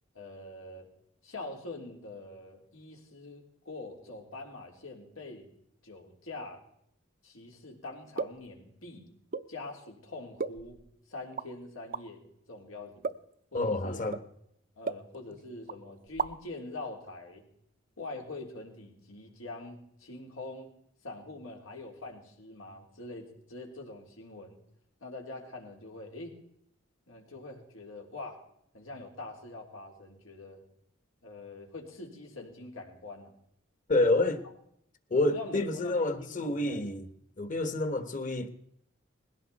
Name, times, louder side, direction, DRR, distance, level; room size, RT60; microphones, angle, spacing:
voice 1, 0.1-0.9 1.2-5.5 5.8-6.6 7.2-9.1 9.5-10.8 11.1-12.2 12.5-13.1 13.5-14.0 14.8-17.4 18.0-20.7 21.0-24.6 25.0-26.3 27.1-28.4 28.7-30.6 31.2-33.3 34.1-34.3 35.3-36.9, left 2 dB, 90° left, 3.6 m, -44 dB
sound 1, 8.2-8.5 9.3-9.5 10.4-10.9 11.3-11.5 11.9-12.0 13.0-13.3 14.1-14.3 14.8-15.4 15.7-15.8 16.1-16.5, right 5 dB, 45° right, 0.6 m, -35 dB
voice 2, 13.5-14.2 33.9-34.4 35.1-37.1 37.4-38.5, left 2 dB, 40° left, 1.4 m, -28 dB
21.0 x 16.5 x 4.2 m
head